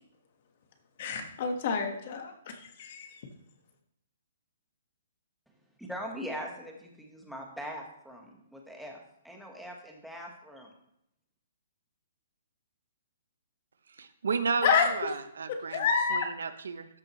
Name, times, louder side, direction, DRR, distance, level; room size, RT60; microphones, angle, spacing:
voice 1, 1.0-2.5 2.8-3.1 14.6-14.9 15.7-16.3, left 6 dB, 45° left, 4 dB, 1.5 m, -28 dB
voice 2, 5.8-10.7, equal, ahead, 0 dB, 1.4 m, -41 dB
voice 3, 14.0-16.9, right 5 dB, 85° right, 11 dB, 0.8 m, -33 dB
13.0 x 6.2 x 3.2 m, 0.77 s
hypercardioid pair, 155°, 0 cm